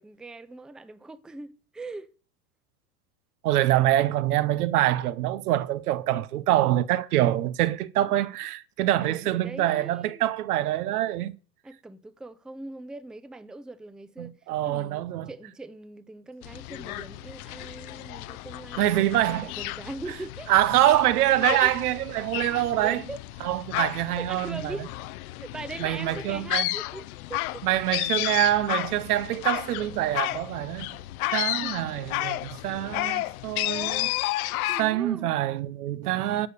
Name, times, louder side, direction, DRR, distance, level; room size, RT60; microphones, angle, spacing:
voice 1, 0.0-2.1 9.0-10.2 11.6-14.3 14.6-20.5 21.5-21.7 22.8-23.2 24.2-24.9 25.4-27.7 31.6-31.7 34.6-35.3, right 2 dB, ahead, 0.4 m, -41 dB
voice 2, 3.4-11.3 14.2-15.3 18.8-19.5 20.5-23.0 23.4-24.8 25.8-26.7 27.6-30.9 31.3-34.1 34.8-36.5, right 14 dB, 90° right, 0.9 m, -25 dB
sound 1, 16.4-34.8, left 18 dB, 75° left, 0.7 m, -32 dB
11.0 x 5.3 x 6.7 m
supercardioid pair, 110°, 44 cm